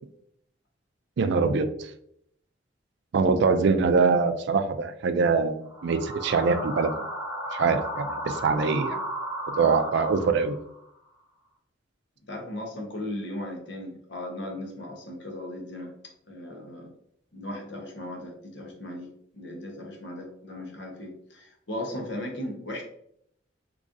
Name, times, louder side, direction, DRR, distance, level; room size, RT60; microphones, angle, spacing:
voice 1, 1.2-1.7 3.1-7.0 7.5-9.0 9.6-10.5, right 4 dB, 65° right, 9 dB, 0.4 m, -23 dB
sound 1, 5.7-10.8, equal, 5° right, 1.0 m, -34 dB
voice 2, 12.3-15.9 16.3-16.9 17.3-19.1 19.3-22.8, left 1 dB, 65° left, 2 dB, 0.9 m, -37 dB
3.7 x 3.0 x 2.6 m, 0.71 s
head